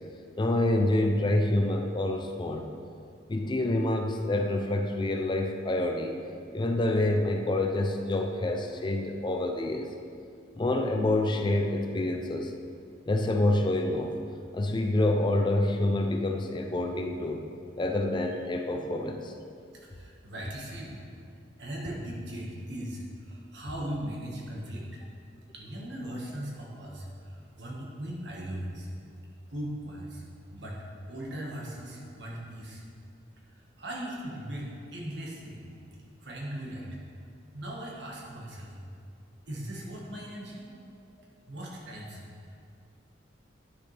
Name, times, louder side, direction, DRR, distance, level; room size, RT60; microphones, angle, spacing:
voice 1, 0.4-2.7 3.3-6.2 6.5-9.9 10.6-12.5 13.1-14.2 14.5-17.4 17.8-19.3, left 1 dB, 25° left, 4 dB, 0.4 m, -27 dB
voice 2, 19.7-21.0 21.6-25.0 25.5-28.9 29.5-30.2 30.5-32.8 33.5-35.6 36.2-36.9 37.5-38.7 39.5-40.7 41.5-42.2 42.5-42.6, right 1 dB, 60° right, -3 dB, 1.5 m, -39 dB
9.7 x 6.6 x 3.3 m, 2.4 s
head